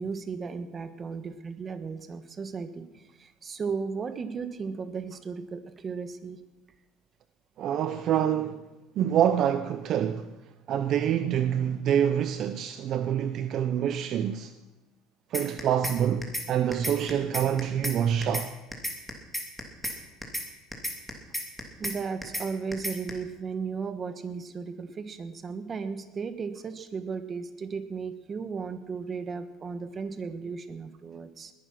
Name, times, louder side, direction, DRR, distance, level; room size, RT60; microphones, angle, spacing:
voice 1, 0.0-6.4 21.8-31.5, right 5 dB, 30° right, 1.4 m, -35 dB
voice 2, 7.6-8.6 9.0-10.3 10.7-14.5 15.3-18.5, right 9 dB, 50° right, 0.8 m, -26 dB
sound 1, 15.3-16.0 16.2-16.5 16.7-18.0 18.2-18.5 18.7-20.0 20.2-20.5 20.7-22.0 22.2-22.5 22.7-23.1, left 1 dB, ahead, 2.9 m, -32 dB
20.0 x 11.5 x 6.1 m
cardioid pair, 130°, 0 cm